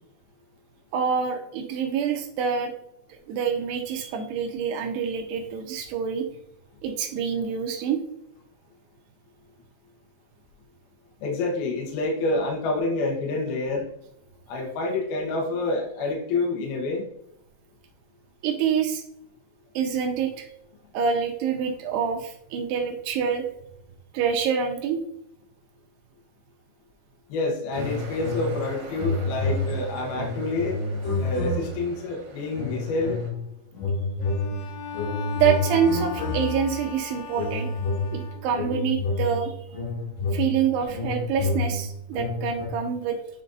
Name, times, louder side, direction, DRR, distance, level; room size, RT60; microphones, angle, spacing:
voice 1, 0.9-2.7 3.1-6.3 6.8-8.0 18.4-19.0 19.8-20.5 20.9-23.5 24.1-25.0 35.4-37.7 38.1-39.5 40.3-43.2, right 7 dB, 80° right, 4 dB, 2.5 m, -26 dB
voice 2, 11.2-13.9 14.5-17.0 27.3-30.8 31.2-33.3, left 2 dB, 65° left, 0 dB, 2.7 m, -28 dB
sound 1, 27.7-28.7 28.9-32.0 32.5-33.4 33.7-36.8 37.3-42.7, left 2 dB, 50° left, 4.2 m, -29 dB
sound 2, 27.7-33.3, right 3 dB, 55° right, 2.8 m, -43 dB
Bowed string instrument, 34.2-38.8, left 8 dB, 85° left, 3.3 m, -38 dB
9.1 x 5.3 x 2.6 m, 0.77 s
omnidirectional pair, 5.4 m